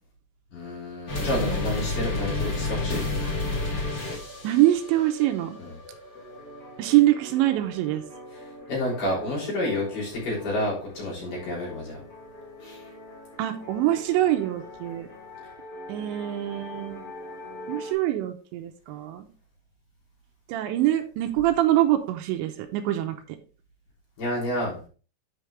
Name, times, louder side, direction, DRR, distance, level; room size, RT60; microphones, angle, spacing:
voice 1, 0.5-3.1 5.6-5.7 8.7-12.0 12.6-12.8 24.2-24.8, left 1 dB, 50° left, -5 dB, 4.9 m, -29 dB
sound 1, 1.1-17.9, left 2 dB, 90° left, 0.9 m, -35 dB
voice 2, 4.4-5.6 6.8-8.0 13.4-15.1 15.9-17.0 17.7-19.3 20.5-23.2, right 14 dB, 80° right, 7 dB, 3.0 m, -24 dB
9.3 x 5.1 x 3.4 m, 0.37 s
omnidirectional pair, 5.2 m